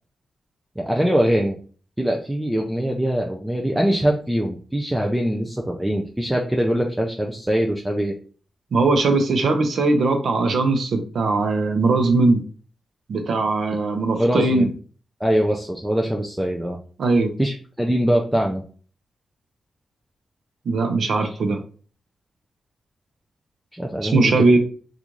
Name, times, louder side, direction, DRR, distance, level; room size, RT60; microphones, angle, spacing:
voice 1, 0.8-1.6 2.0-8.1 14.2-14.7 15.2-16.8 17.4-18.6 21.2-21.4 23.7-24.4, equal, 5° right, 1 dB, 0.3 m, -22 dB
voice 2, 8.7-12.4 13.1-14.7 17.0-17.3 20.7-21.6 24.0-24.6, right 3 dB, 70° right, 5 dB, 0.6 m, -19 dB
3.0 x 2.4 x 3.7 m, 0.41 s
wide cardioid pair, 140°, 0 cm